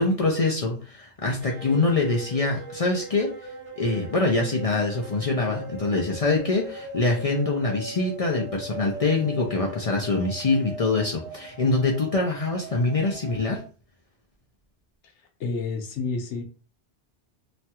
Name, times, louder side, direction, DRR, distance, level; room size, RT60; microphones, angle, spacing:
voice 1, 0.0-3.4 3.8-13.6, left 3 dB, 50° left, 0 dB, 0.4 m, -24 dB
sound 1, 1.4-13.6, right 2 dB, 75° right, 1.2 m, -39 dB
voice 2, 15.2-16.4, left 4 dB, 90° left, 4 dB, 1.0 m, -30 dB
3.1 x 2.3 x 2.8 m, 0.38 s
omnidirectional pair, 1.2 m